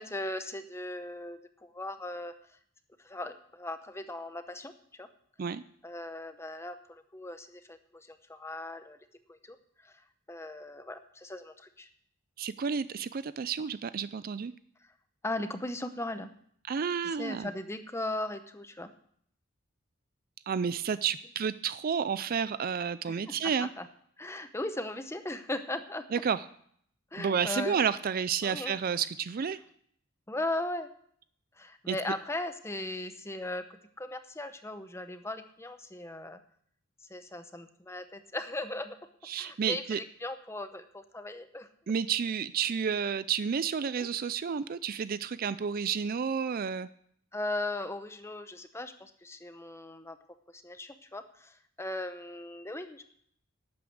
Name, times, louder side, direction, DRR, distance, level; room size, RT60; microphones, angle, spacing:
voice 1, 0.0-2.3 3.0-5.1 5.8-9.0 9.3-9.6 9.8-9.9 10.3-11.9 15.2-16.3 17.0-18.9 23.1-23.9 24.2-26.1 27.1-27.8 28.4-28.8 30.3-30.9 31.6-36.4 37.1-39.0 39.4-41.7 44.0-44.1 47.3-50.2 50.5-53.0, left 2 dB, 15° left, 9 dB, 0.8 m, -38 dB
voice 2, 12.4-14.5 16.7-17.5 20.5-23.7 26.1-26.4 27.2-29.6 31.9-32.0 39.3-40.0 41.9-46.9, right 7 dB, 45° right, 15 dB, 0.4 m, -31 dB
12.0 x 8.4 x 7.9 m, 0.65 s
head